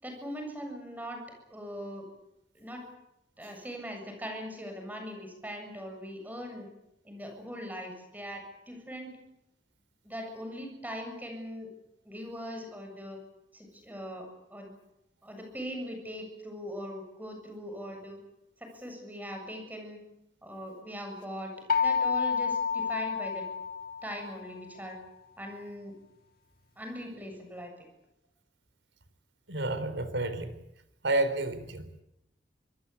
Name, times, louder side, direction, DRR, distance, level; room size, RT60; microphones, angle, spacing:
voice 1, 0.0-1.2 1.5-2.1 2.5-2.9 3.4-6.7 7.0-9.1 10.0-11.7 12.0-13.2 13.5-14.7 15.2-18.2 18.6-20.0 20.4-21.5 21.8-23.5 24.0-25.0 25.4-25.9 26.8-27.9, equal, 10° right, 4 dB, 7.6 m, -40 dB
sound 1, 21.7-24.5, left 6 dB, 55° left, 2.0 m, -29 dB
voice 2, 29.5-30.5 31.0-31.9, right 2 dB, 85° right, 11 dB, 4.0 m, -30 dB
26.0 x 20.5 x 8.5 m, 0.85 s
head